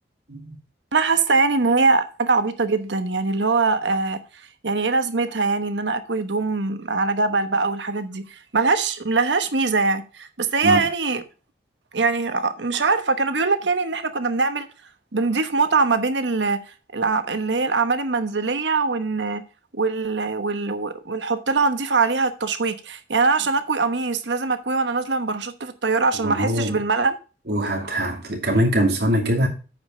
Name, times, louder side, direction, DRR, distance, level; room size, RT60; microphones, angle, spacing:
voice 1, 0.9-4.2 4.6-11.2 11.9-14.7 15.1-16.6 16.9-19.4 19.8-27.2, right 4 dB, 90° right, 1.1 m, -22 dB
voice 2, 26.2-26.8 27.5-29.5, equal, 65° right, 2.6 m, -22 dB
8.8 x 5.4 x 5.3 m
head